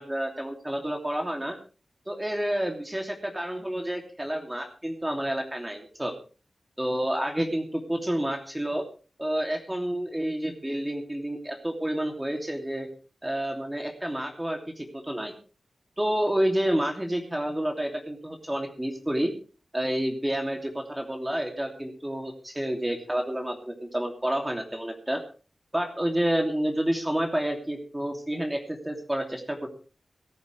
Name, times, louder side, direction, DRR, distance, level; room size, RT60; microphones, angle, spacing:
voice 1, 0.0-1.6 2.1-6.1 6.8-8.8 9.2-12.9 13.2-15.3 16.0-19.3 19.7-25.2 25.7-29.7, right 1 dB, 10° right, 3 dB, 2.9 m, -29 dB
18.5 x 13.5 x 3.4 m, 0.37 s
wide cardioid pair, 85°, 0 cm